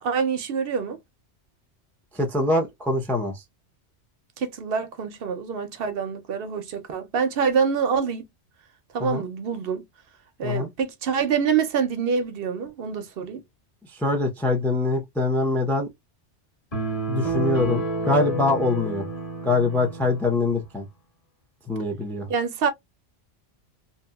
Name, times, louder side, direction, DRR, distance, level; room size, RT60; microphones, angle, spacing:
voice 1, 0.0-1.0 4.4-8.3 8.9-9.8 10.4-13.4 22.3-22.7, right 6 dB, 60° right, 0.7 m, -26 dB
voice 2, 2.1-3.3 9.0-9.2 10.4-10.7 14.0-15.9 17.1-19.1 19.4-20.8 21.7-22.3, left 2 dB, 5° left, 0.4 m, -24 dB
sound 1, 16.7-20.3, right 2 dB, 30° left, 1.4 m, -29 dB
2.7 x 2.6 x 2.2 m
omnidirectional pair, 1.2 m